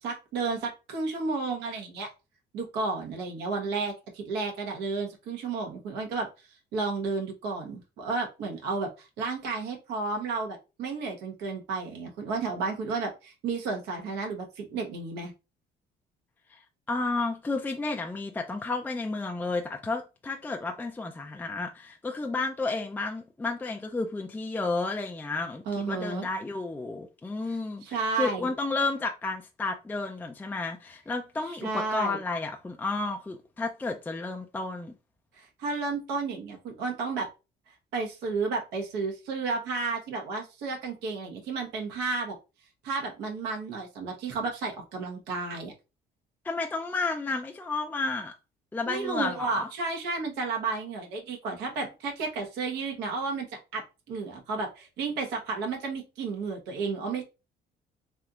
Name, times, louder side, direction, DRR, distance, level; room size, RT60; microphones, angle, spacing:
voice 1, 0.0-2.1 2.5-6.3 6.7-15.3 25.7-26.3 27.5-28.5 31.5-32.2 35.4-37.3 37.9-42.3 42.8-45.7 48.9-53.5 53.7-57.2, right 4 dB, 85° right, 1.2 m, -32 dB
voice 2, 16.9-34.9 46.4-48.3 48.7-49.7, left 3 dB, 10° left, 0.4 m, -32 dB
3.3 x 2.7 x 2.4 m
cardioid pair, 110°, 17 cm